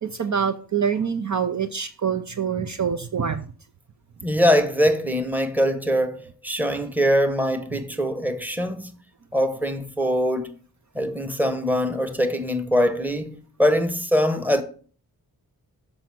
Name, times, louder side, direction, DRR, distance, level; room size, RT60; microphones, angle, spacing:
voice 1, 0.0-3.5, right 7 dB, 45° right, 0.6 m, -25 dB
voice 2, 4.2-8.9 9.3-10.5 10.9-14.6, equal, 5° right, 1.1 m, -23 dB
6.9 x 5.3 x 6.0 m
wide cardioid pair, 75°, 39 cm